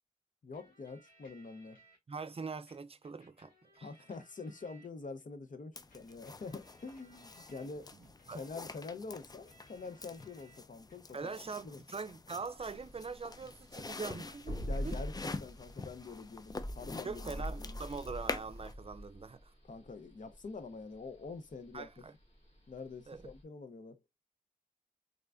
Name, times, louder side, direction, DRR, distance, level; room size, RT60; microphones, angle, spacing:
voice 1, 0.4-1.8 3.8-7.9 8.3-11.3 11.6-11.8 14.7-17.8 19.7-21.9 22.7-24.0, left 4 dB, 70° left, 0.7 m, -46 dB
sound 1, 0.5-2.0 2.7-5.2 5.9-10.6 10.9-11.8, right 1 dB, 90° left, 1.9 m, -65 dB
voice 2, 2.1-3.9 8.3-8.5 11.1-15.0 17.0-19.5 21.7-22.1 23.1-23.3, right 4 dB, 45° right, 0.4 m, -43 dB
sound 2, 5.8-18.7, left 3 dB, 30° left, 0.4 m, -46 dB
sound 3, 12.6-23.4, equal, 45° left, 2.1 m, -43 dB
3.7 x 3.3 x 2.4 m
wide cardioid pair, 60°, 14 cm